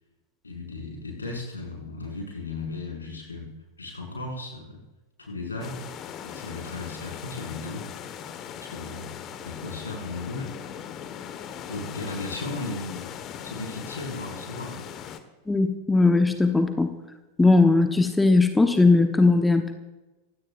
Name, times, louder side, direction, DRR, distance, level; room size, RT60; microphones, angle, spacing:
voice 1, 0.4-3.5 3.8-4.8 5.2-5.8 6.2-7.8 8.6-10.5 11.7-13.0 13.4-14.8, left 3 dB, 75° left, -2 dB, 5.7 m, -35 dB
sound 1, 5.6-15.2, left 8 dB, 35° left, 1.3 m, -39 dB
voice 2, 15.5-16.9 17.4-19.7, left 3 dB, 10° left, 7 dB, 1.0 m, -19 dB
25.5 x 17.0 x 2.5 m, 1.1 s
figure-of-eight pair, 90°, 0 cm